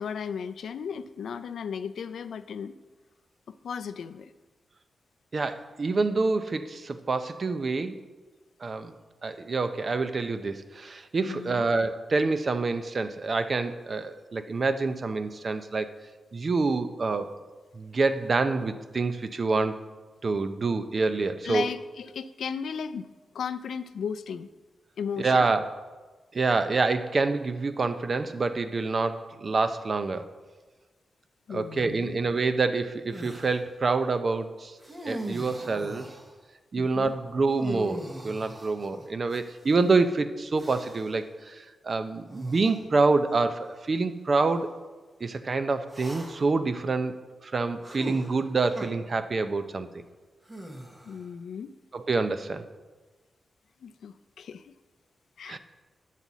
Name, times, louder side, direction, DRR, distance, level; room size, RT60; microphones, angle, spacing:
voice 1, 0.0-2.7 3.5-4.3 11.3-11.7 21.4-24.5 25.0-25.5 31.5-32.2 36.7-37.1 51.0-51.8 53.8-54.7 55.4-55.6, left 6 dB, 85° left, 12 dB, 0.3 m, -35 dB
voice 2, 5.3-8.0 8.6-9.0 9.2-15.9 16.3-17.3 17.7-19.8 20.2-21.7 25.2-25.7 26.3-30.3 31.5-34.8 35.0-36.1 36.7-44.7 45.2-47.2 47.4-50.0 51.9-52.6 55.5-55.6, right 3 dB, 40° right, 10 dB, 0.5 m, -27 dB
sound 1, 33.1-33.6 34.8-36.3 37.5-39.8 40.6-41.2 42.3-42.8 43.6-43.8 45.9-46.6 47.8-48.9 50.5-51.3, right 1 dB, 20° right, 0.9 m, -40 dB
9.0 x 4.1 x 7.1 m, 1.3 s
wide cardioid pair, 120°, 0 cm